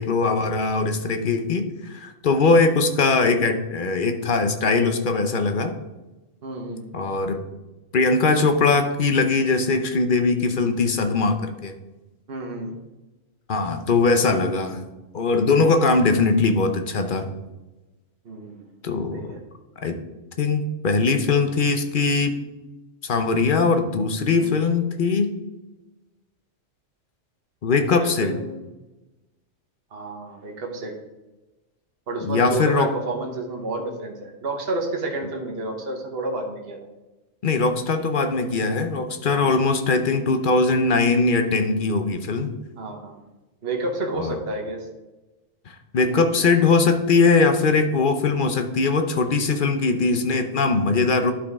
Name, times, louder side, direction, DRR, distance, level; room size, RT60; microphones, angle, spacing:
voice 1, 0.0-5.7 6.9-7.4 7.9-11.8 13.5-14.8 15.1-17.3 18.8-19.2 19.8-20.0 20.4-22.4 23.0-25.3 27.6-28.4 32.2-32.9 37.4-42.5 44.2-44.4 45.7-51.3, left 4 dB, 50° left, 7 dB, 0.8 m, -21 dB
voice 2, 6.4-6.9 12.3-12.7 18.2-18.7 19.1-19.4 24.3-24.5 27.9-28.7 29.9-31.0 32.1-36.9 39.3-39.5 42.8-43.3 43.6-44.8, right 2 dB, 50° right, 2 dB, 1.4 m, -30 dB
11.5 x 5.0 x 3.5 m, 1.1 s
omnidirectional pair, 1.3 m